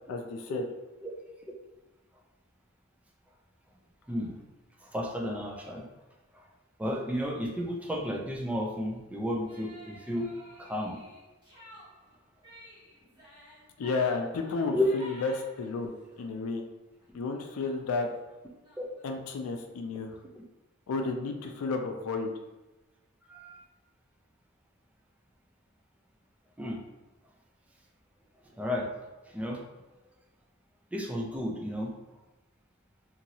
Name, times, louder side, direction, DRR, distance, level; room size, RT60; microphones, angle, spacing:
voice 1, 0.1-0.6 13.8-15.3 15.6-15.9 16.2-16.6 17.1-18.1 19.0-20.2 20.9-22.3, left 4 dB, 80° left, 4 dB, 0.4 m, -32 dB
voice 2, 4.1-4.4 4.8-5.9 6.3-6.5 6.8-11.0 14.7-14.9 18.8-18.9 23.3-23.6 26.6-26.8 28.5-28.9 29.3-29.6 30.9-31.9, left 1 dB, 5° right, -1 dB, 0.4 m, -33 dB
sound 1, 9.5-16.3 16.7-17.0 17.3-17.4 17.6-19.0, equal, 20° right, 1.1 m, -53 dB
2.9 x 2.6 x 2.7 m, 1.1 s
head